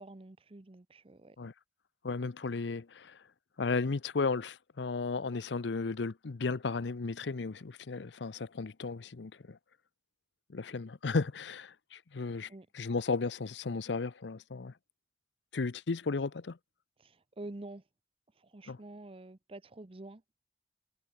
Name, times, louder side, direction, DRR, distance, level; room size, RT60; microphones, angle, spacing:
voice 1, 0.0-1.4 12.5-12.7 17.0-17.8 18.4-20.2, right 2 dB, 30° right, 0.8 m, -47 dB
voice 2, 2.0-3.2 3.6-9.6 10.5-14.7 15.5-16.6 18.7-18.8, left 4 dB, 90° left, 0.7 m, -34 dB
head